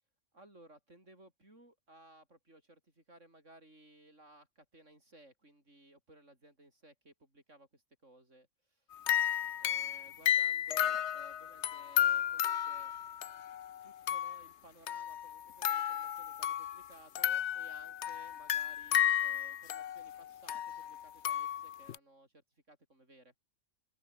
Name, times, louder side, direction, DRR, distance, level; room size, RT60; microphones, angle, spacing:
voice 1, 0.3-8.9 9.6-12.9 13.8-23.3, right 1 dB, 80° right, 8.5 m, -60 dB
sound 1, 8.9-14.5 14.9-16.9 17.2-22.0, left 10 dB, 70° left, 1.0 m, -33 dB
open air
omnidirectional pair, 1.2 m